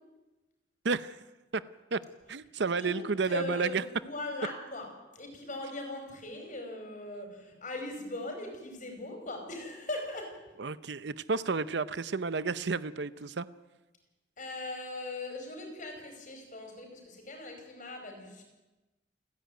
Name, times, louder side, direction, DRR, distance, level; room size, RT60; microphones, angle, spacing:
voice 1, 0.8-1.2 1.5-1.6 1.9-2.0 2.3-3.8 10.6-13.5, right 4 dB, 60° right, 15 dB, 0.6 m, -31 dB
voice 2, 2.7-4.9 5.1-10.3 14.4-18.4, left 2 dB, 40° left, 4 dB, 4.9 m, -40 dB
29.0 x 10.5 x 9.3 m, 1.1 s
head